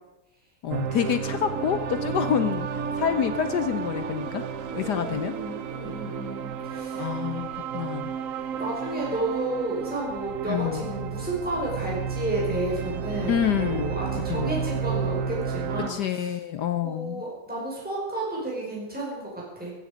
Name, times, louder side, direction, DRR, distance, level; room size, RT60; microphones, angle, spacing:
voice 1, 0.6-4.4 4.7-5.3 7.0-8.1 10.5-10.9 13.2-14.0 14.3-14.5 15.9-17.2, left 9 dB, 65° left, 10 dB, 1.1 m, -27 dB
sound 1, 0.7-15.9, right 6 dB, 65° right, 0.8 m, -31 dB
voice 2, 4.7-7.2 7.6-7.7 8.6-16.3 16.8-19.7, right 1 dB, 5° right, -4 dB, 5.3 m, -32 dB
16.0 x 14.5 x 5.2 m, 0.96 s
omnidirectional pair, 2.3 m